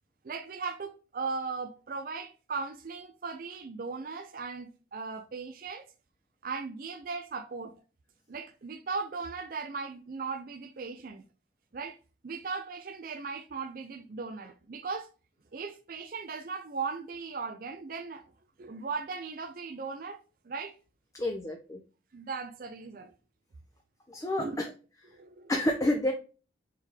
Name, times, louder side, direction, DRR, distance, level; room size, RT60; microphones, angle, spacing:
voice 1, 0.2-5.9 6.4-7.7 8.3-11.2 11.7-12.0 12.2-15.1 15.5-18.2 18.6-20.2 20.4-20.7 22.1-23.1 24.4-24.6 25.1-25.5, right 4 dB, 55° right, 0.5 m, -38 dB
voice 2, 21.2-21.8 24.1-24.7 25.5-26.1, left 1 dB, 20° left, 0.6 m, -29 dB
4.5 x 3.5 x 3.3 m
head